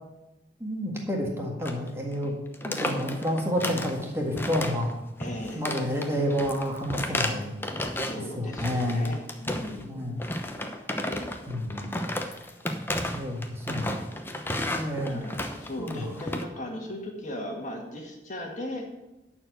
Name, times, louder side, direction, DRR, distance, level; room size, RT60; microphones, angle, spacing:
voice 1, 0.6-2.3 2.6-4.9 5.5-7.6 8.3-9.1 9.7-10.2 11.5-12.0 13.1-13.9 14.7-15.2 15.8-16.2, equal, 15° right, 0 dB, 1.6 m, -29 dB
sound 1, 1.6-1.9 2.1-2.3 2.5-4.0 4.4-4.9 5.2-8.2 8.5-9.8 10.2-16.4, left 1 dB, 15° left, 0.8 m, -32 dB
voice 2, 5.2-5.7 8.0-10.3 15.0-18.9, left 1 dB, 45° left, 1 dB, 1.8 m, -37 dB
12.0 x 4.5 x 7.9 m, 0.99 s
head